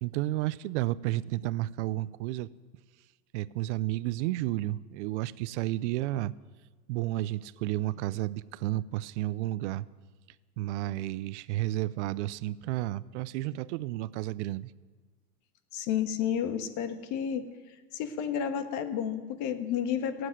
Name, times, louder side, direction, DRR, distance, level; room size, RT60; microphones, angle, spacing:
voice 1, 0.0-2.5 3.3-6.3 6.9-9.8 10.6-14.7, right 16 dB, 50° right, 19 dB, 0.6 m, -32 dB
voice 2, 15.7-17.5 17.9-20.3, left 8 dB, 40° left, 9 dB, 1.4 m, -31 dB
16.0 x 8.0 x 9.3 m, 1.4 s
hypercardioid pair, 125°, 45 cm